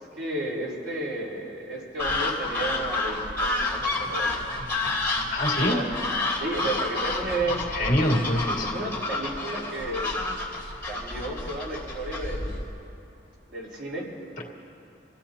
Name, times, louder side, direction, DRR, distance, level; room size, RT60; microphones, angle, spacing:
voice 1, 0.0-4.4 5.7-5.8 6.3-7.7 8.6-10.1 10.8-12.6 13.5-14.1, right 2 dB, 80° right, -5 dB, 4.6 m, -32 dB
sound 1, 2.0-12.7, left 2 dB, 10° left, 3.2 m, -29 dB
voice 2, 5.3-5.8 7.7-8.7 14.4-14.5, left 1 dB, 50° left, -2 dB, 2.2 m, -25 dB
29.0 x 16.0 x 2.9 m, 2.7 s
head